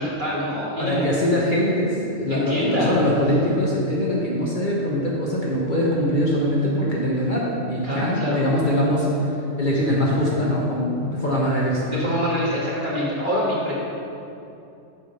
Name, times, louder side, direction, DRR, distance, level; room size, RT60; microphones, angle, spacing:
voice 1, 0.0-1.1 2.3-2.9 7.8-8.4 11.9-13.7, equal, 40° right, -7 dB, 1.9 m, -25 dB
voice 2, 0.8-12.0, equal, 40° left, -5 dB, 1.1 m, -22 dB
7.8 x 3.7 x 6.5 m, 2.7 s
omnidirectional pair, 1.3 m